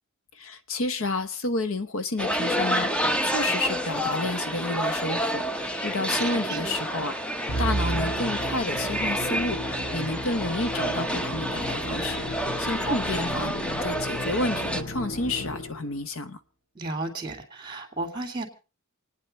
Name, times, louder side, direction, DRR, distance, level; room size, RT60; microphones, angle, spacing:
voice 1, 0.3-12.2 12.6-16.4, left 2 dB, 65° left, 12 dB, 1.0 m, -30 dB
sound 1, 2.2-14.8, equal, 5° left, 0.8 m, -29 dB
voice 2, 6.3-6.8 12.9-13.0 16.7-18.4, right 2 dB, 20° right, 6 dB, 2.9 m, -33 dB
Musical instrument, 7.5-16.0, equal, 40° left, 3.7 m, -34 dB
28.5 x 9.9 x 4.3 m, 0.36 s
head